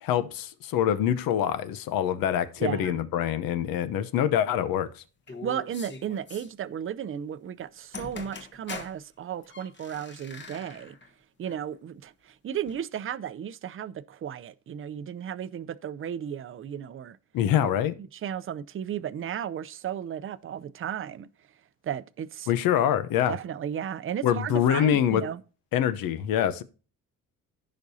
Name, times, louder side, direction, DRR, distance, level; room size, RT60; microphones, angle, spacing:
voice 1, 0.0-4.9 17.3-17.9 22.5-23.4 24.2-25.2 25.7-26.6, left 10 dB, 85° left, 0.9 m, -25 dB
voice 2, 2.6-3.0 5.4-11.0 11.4-17.2 17.5-17.7 18.1-21.3 21.8-22.5 23.3-25.4, right 9 dB, 40° right, 0.6 m, -34 dB
sound 1, 5.3-6.5 7.7-7.8 7.9-9.0 9.4-11.1 11.4-11.6 12.7-12.8, left 3 dB, 35° left, 1.2 m, -42 dB
15.0 x 5.3 x 2.7 m
cardioid pair, 100°, 34 cm